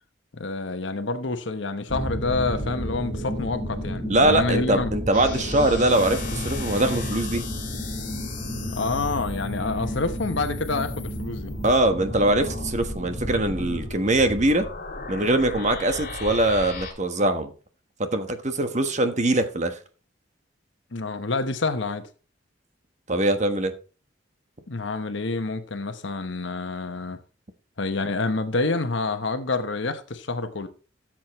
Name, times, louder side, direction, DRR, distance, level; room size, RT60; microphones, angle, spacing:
voice 1, 0.3-4.9 8.7-11.5 20.9-22.1 24.7-27.2 27.8-30.7, left 3 dB, 70° left, 1.0 m, -28 dB
sound 1, 1.9-13.9, equal, 20° right, 2.6 m, -32 dB
voice 2, 4.1-7.4 11.6-14.7 15.1-17.5 18.0-19.8 23.1-23.7, right 1 dB, 35° right, 1.3 m, -22 dB
sound 2, 5.1-16.9, left 3 dB, 45° left, 2.4 m, -37 dB
13.5 x 7.5 x 3.1 m
head